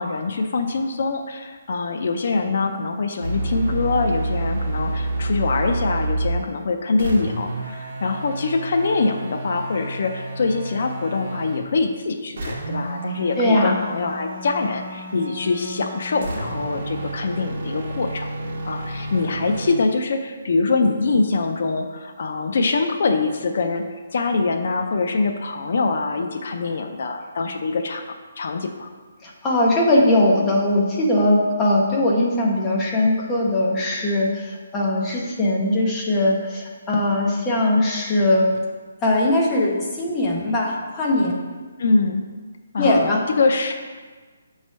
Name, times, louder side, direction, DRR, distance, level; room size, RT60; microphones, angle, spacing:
voice 1, 0.0-18.3 18.6-23.9 24.1-28.9 41.8-42.2 42.7-43.7, left 3 dB, 50° left, 4 dB, 0.4 m, -24 dB
sound 1, 3.2-6.5 7.0-11.7 12.4-19.7, right 2 dB, 40° right, 1.0 m, -29 dB
voice 2, 13.4-13.7 29.2-38.6 39.0-41.5 42.8-43.2, left 1 dB, 10° left, -3 dB, 0.7 m, -20 dB
6.0 x 3.2 x 5.4 m, 1.4 s
hypercardioid pair, 175°, 0 cm